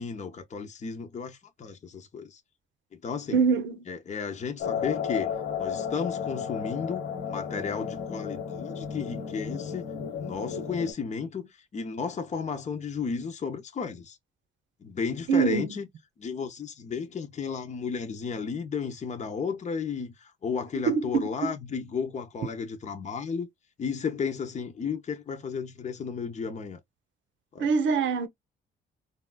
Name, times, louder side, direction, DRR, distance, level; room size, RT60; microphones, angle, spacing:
voice 1, 0.0-2.4 2.9-3.4 3.9-9.9 10.2-14.2 14.8-15.9 16.2-23.5 23.8-26.8 27.5-27.7, left 5 dB, 35° left, 0.7 m, -33 dB
voice 2, 3.3-3.9 15.3-15.6 20.9-21.5 27.6-28.3, right 5 dB, 70° right, 0.8 m, -24 dB
sound 1, 4.6-10.9, left 7 dB, 90° left, 1.1 m, -33 dB
3.4 x 2.4 x 2.2 m
cardioid pair, 90°, 20 cm